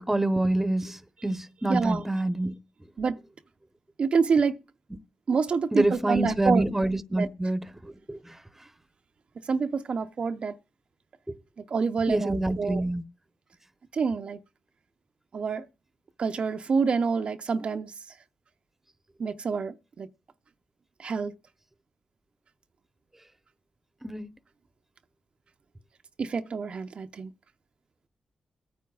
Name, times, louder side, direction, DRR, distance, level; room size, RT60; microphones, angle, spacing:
voice 1, 0.0-2.5 5.7-7.6 8.1-8.2 12.1-13.0 24.0-24.3, right 1 dB, 15° right, 1.0 m, -26 dB
voice 2, 1.7-2.0 3.0-3.2 4.0-4.6 5.3-6.6 7.2-7.3 9.5-10.5 11.7-12.8 13.9-14.4 15.3-15.7 16.2-17.9 19.2-20.1 21.0-21.3 26.2-27.3, right 5 dB, 60° right, 0.7 m, -27 dB
21.5 x 9.3 x 2.4 m
cardioid pair, 55°, 2 cm